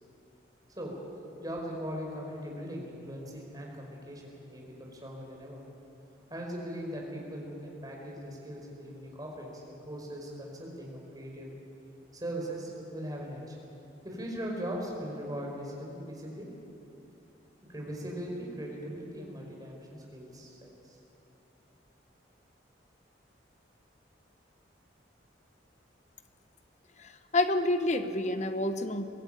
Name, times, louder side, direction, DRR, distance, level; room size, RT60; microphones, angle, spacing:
voice 1, 1.4-5.6 6.3-11.5 12.1-13.6 14.0-16.5 17.7-21.0, equal, 20° right, -1 dB, 4.8 m, -39 dB
voice 2, 27.0-29.0, left 2 dB, 40° left, 9 dB, 1.1 m, -28 dB
23.5 x 16.0 x 8.9 m, 2.8 s
head